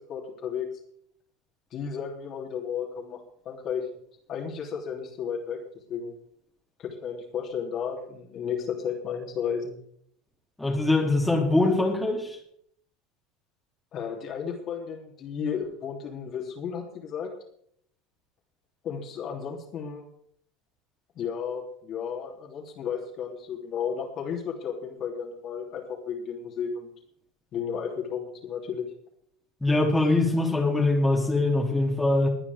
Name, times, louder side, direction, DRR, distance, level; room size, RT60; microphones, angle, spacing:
voice 1, 0.1-0.7 1.7-3.9 4.3-5.6 5.9-6.1 6.8-9.8 13.9-17.3 18.8-20.0 21.2-26.9 27.5-28.9, left 7 dB, 45° left, 1 dB, 3.3 m, -33 dB
voice 2, 10.6-12.3 29.6-32.3, left 2 dB, 10° left, -1 dB, 3.2 m, -23 dB
21.0 x 9.7 x 3.6 m, 0.67 s
figure-of-eight pair, 75°, 0 cm